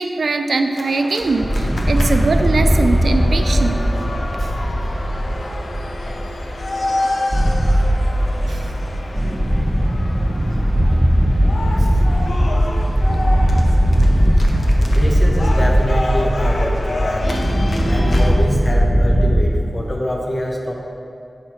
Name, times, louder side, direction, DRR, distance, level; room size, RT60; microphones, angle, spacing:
voice 1, 0.0-3.8 4.4-4.5 8.5-8.7 10.4-10.5, right 3 dB, 80° right, 7 dB, 0.4 m, -21 dB
sound 1, 0.8-18.3, left 1 dB, 65° left, 0.7 m, -29 dB
sound 2, 1.2-19.4, equal, 15° right, 0.6 m, -18 dB
voice 2, 14.9-17.4 17.8-20.7, left 1 dB, 35° left, -1 dB, 1.1 m, -25 dB
6.5 x 5.5 x 4.4 m, 2.6 s
wide cardioid pair, 70°, 0 cm